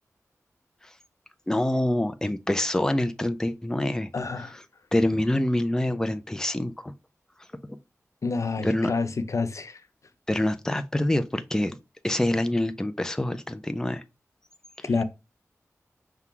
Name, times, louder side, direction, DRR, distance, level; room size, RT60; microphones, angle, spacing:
voice 1, 1.5-4.1 4.4-4.6 4.9-6.9 8.6-8.9 10.3-11.8 12.0-14.0, left 1 dB, 10° left, 0.5 m, -26 dB
voice 2, 4.1-4.6 8.2-9.8 14.8-15.0, left 4 dB, 65° left, 0.6 m, -28 dB
5.6 x 2.4 x 3.7 m
cardioid pair, 50°, 6 cm